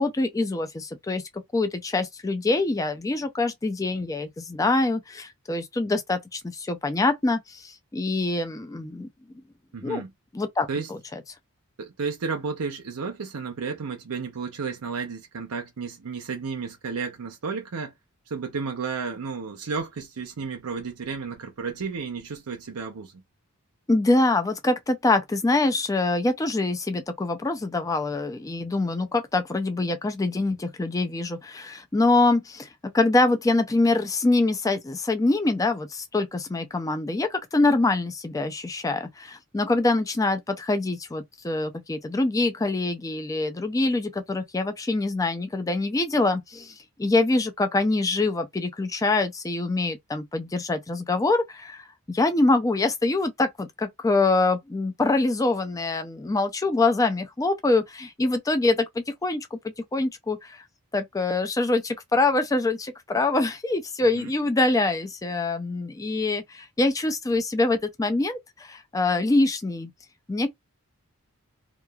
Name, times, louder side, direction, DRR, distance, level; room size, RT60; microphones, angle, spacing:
voice 1, 0.0-9.1 9.8-10.0 10.3-11.0 23.9-32.7 32.9-59.6 59.9-60.6 60.9-69.9 70.3-70.5, left 2 dB, 15° left, 0.3 m, -25 dB
voice 2, 9.7-10.1 10.7-10.9 11.8-17.9 18.3-23.2 64.2-64.3, right 5 dB, 80° right, 0.7 m, -32 dB
3.0 x 2.3 x 2.3 m
head